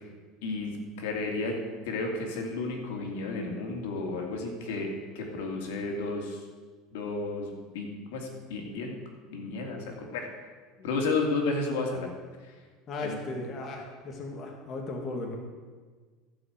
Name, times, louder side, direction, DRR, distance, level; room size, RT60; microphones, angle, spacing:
voice 1, 0.4-1.6 1.8-4.9 5.1-6.4 6.9-8.9 9.3-10.3 10.8-12.1 12.4-12.6 13.0-13.2, left 3 dB, 85° left, 1 dB, 2.5 m, -32 dB
voice 2, 12.9-15.4, left 2 dB, 35° left, 1 dB, 1.7 m, -36 dB
14.0 x 5.4 x 8.0 m, 1.5 s
cardioid pair, 155°, 0 cm